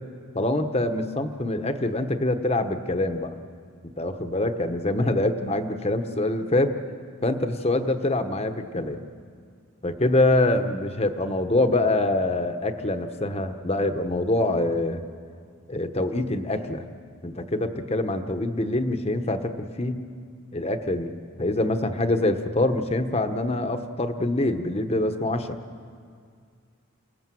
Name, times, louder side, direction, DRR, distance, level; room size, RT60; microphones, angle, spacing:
voice 1, 0.3-3.3 4.0-6.7 7.2-9.1 9.8-15.0 15.7-16.8 17.2-20.0 20.5-25.6, left 2 dB, 30° left, 7 dB, 1.1 m, -25 dB
28.5 x 18.5 x 7.7 m, 2.2 s
head